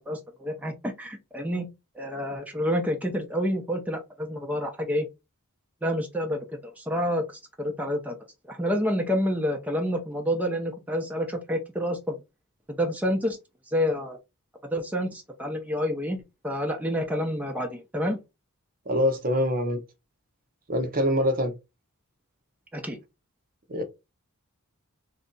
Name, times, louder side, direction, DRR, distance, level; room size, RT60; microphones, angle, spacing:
voice 1, 0.1-0.7 1.0-1.7 1.9-5.0 5.8-6.4 6.8-7.2 7.6-8.1 8.5-12.2 12.7-13.4 13.7-14.2 14.7-18.2 22.7-23.0, equal, 5° right, 0.7 m, -28 dB
voice 2, 18.9-19.8 20.7-21.5 23.7-23.8, equal, 40° right, 0.8 m, -24 dB
3.3 x 2.6 x 3.8 m
head